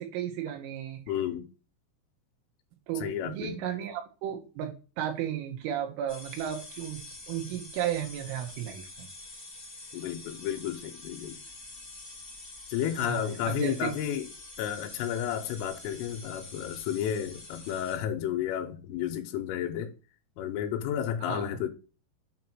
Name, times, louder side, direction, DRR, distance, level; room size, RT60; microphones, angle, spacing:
voice 1, 0.0-1.0 2.9-9.1 13.0-13.2 13.5-13.9 21.3-21.4, right 10 dB, 85° right, 3.9 m, -34 dB
voice 2, 1.1-1.5 3.0-3.8 9.9-11.4 12.7-14.3 14.6-19.9 20.4-21.7, left 10 dB, 90° left, 3.4 m, -32 dB
sound 1, 6.1-18.0, left 2 dB, 70° left, 0.5 m, -46 dB
8.2 x 2.9 x 6.0 m
omnidirectional pair, 5.6 m